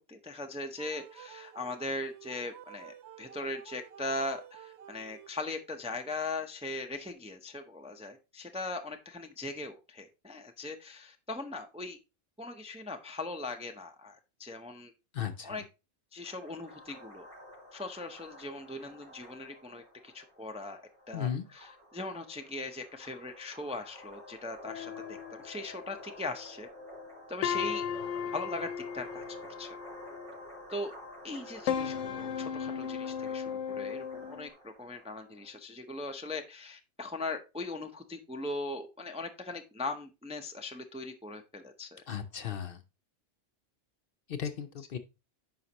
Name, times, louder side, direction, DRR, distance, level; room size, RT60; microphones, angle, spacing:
voice 1, 0.0-12.0 12.4-14.9 15.4-15.6 16.1-17.3 17.7-20.8 21.1-26.7 27.3-27.9 28.3-29.8 30.7-30.9 31.2-42.0, left 2 dB, 10° right, 5 dB, 0.4 m, -40 dB
sound 1, 0.8-5.7, right 11 dB, 70° right, 0.8 m, -51 dB
voice 2, 15.1-15.7 21.1-21.5 42.1-42.8 44.3-45.0, left 8 dB, 60° left, 9 dB, 0.7 m, -36 dB
sound 2, 16.2-35.5, left 1 dB, 45° right, 4.4 m, -51 dB
sound 3, 24.6-26.5 27.0-27.1 27.4-30.7 31.3-34.5, left 8 dB, 80° left, 1.0 m, -36 dB
9.4 x 5.7 x 2.9 m, 0.28 s
omnidirectional pair, 1.3 m